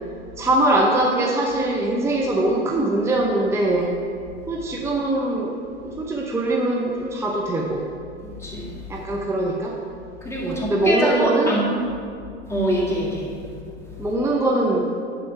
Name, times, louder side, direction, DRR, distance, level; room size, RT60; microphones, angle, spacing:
voice 1, 0.4-3.9 4.5-5.5 5.8-7.8 8.9-9.8 10.4-11.5 14.0-14.9, right 1 dB, 10° right, -1 dB, 0.7 m, -22 dB
voice 2, 8.2-8.8 10.2-11.7 12.5-13.3, equal, 10° left, -4 dB, 2.0 m, -24 dB
9.8 x 3.8 x 5.8 m, 2.3 s
hypercardioid pair, 90°, 34 cm